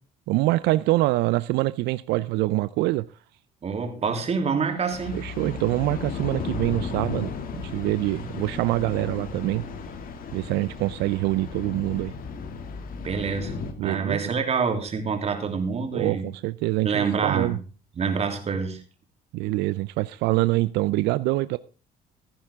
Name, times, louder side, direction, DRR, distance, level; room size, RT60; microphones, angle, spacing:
voice 1, 0.3-3.1 5.1-9.6 10.3-12.1 13.8-14.3 15.9-17.6 19.3-21.6, right 19 dB, 90° right, 0.5 m, -25 dB
voice 2, 3.6-5.2 13.0-16.3 16.8-17.6 17.9-18.8, right 5 dB, 40° right, 3.1 m, -27 dB
sound 1, 4.9-13.7, left 5 dB, 55° left, 2.3 m, -35 dB
16.0 x 10.0 x 3.6 m
cardioid pair, 110°, 17 cm